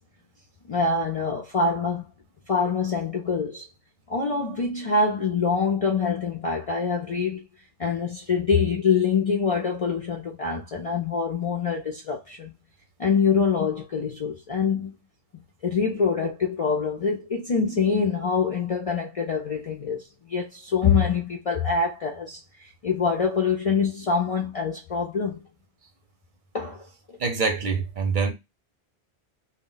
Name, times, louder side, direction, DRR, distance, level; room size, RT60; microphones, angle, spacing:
voice 1, 0.7-2.0 2.5-3.6 4.1-7.4 7.8-12.5 13.0-14.9 15.6-25.4 26.5-26.8, left 5 dB, 50° left, 0.4 m, -25 dB
voice 2, 27.2-28.3, right 4 dB, 55° right, 0.7 m, -25 dB
2.1 x 2.1 x 3.7 m
omnidirectional pair, 1.1 m